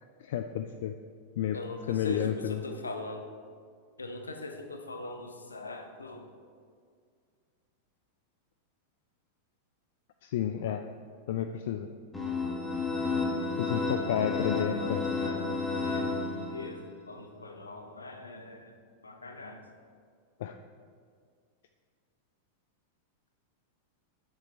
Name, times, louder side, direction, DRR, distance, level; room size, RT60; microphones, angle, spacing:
voice 1, 0.2-1.0 1.4-1.6 1.9-2.6 10.2-10.8 11.3-11.9 13.6-15.1 20.4-20.5, left 9 dB, 55° left, 7 dB, 0.4 m, -31 dB
voice 2, 1.5-3.3 4.0-6.2 14.4-16.8 17.1-18.7 19.0-19.6, left 2 dB, 75° left, 5 dB, 0.9 m, -41 dB
sound 1, 12.1-16.9, left 3 dB, 5° left, 2.0 m, -31 dB
9.4 x 7.2 x 4.3 m, 2.1 s
figure-of-eight pair, 90°, 0 cm